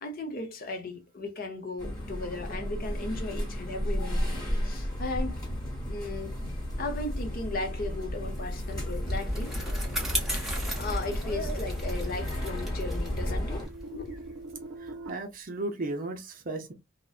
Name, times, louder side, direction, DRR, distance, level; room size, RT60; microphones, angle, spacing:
voice 1, 0.0-5.4 5.9-6.4 6.8-9.5 10.3-14.2, left 2 dB, 45° left, 0.6 m, -36 dB
sound 1, 1.8-13.7, equal, 20° left, 1.1 m, -33 dB
Bicycle, 8.3-15.1, equal, ahead, 0.7 m, -37 dB
sound 2, 10.4-15.1, right 2 dB, 85° right, 0.5 m, -46 dB
voice 2, 14.8-16.7, right 2 dB, 40° right, 0.5 m, -35 dB
2.5 x 2.1 x 2.3 m
head